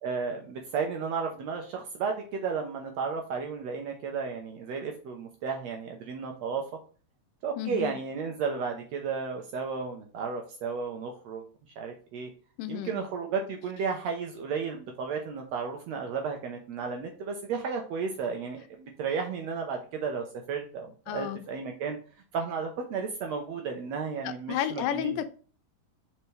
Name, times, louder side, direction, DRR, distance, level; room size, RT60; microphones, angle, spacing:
voice 1, 0.0-6.6 7.4-11.4 11.8-12.3 12.7-22.0 22.3-25.2, right 5 dB, 70° right, 1.7 m, -33 dB
voice 2, 7.6-8.0 12.6-13.0 21.1-21.4 24.2-25.3, left 11 dB, 85° left, 2.3 m, -32 dB
6.5 x 4.5 x 3.2 m
omnidirectional pair, 3.8 m